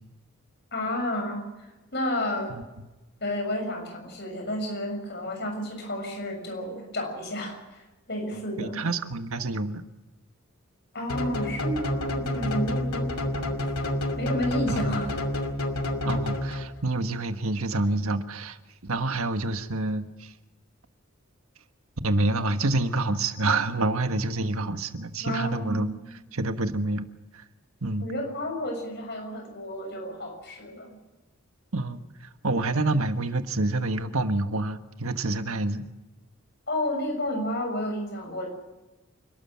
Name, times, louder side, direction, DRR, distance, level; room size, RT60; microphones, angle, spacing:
voice 1, 0.7-2.6 3.2-8.8 10.9-13.2 14.2-15.1 25.2-25.8 28.0-31.0 36.7-38.5, left 1 dB, 50° left, 3 dB, 6.8 m, -31 dB
voice 2, 8.3-9.8 14.7-15.0 16.0-18.6 18.8-20.3 22.0-25.9 26.3-27.1 27.3-27.4 27.8-28.1 31.7-35.8, right 2 dB, 80° right, 8 dB, 1.4 m, -28 dB
sound 1, 11.1-16.9, left 1 dB, 85° left, 2.6 m, -29 dB
28.5 x 13.0 x 7.4 m, 1.1 s
head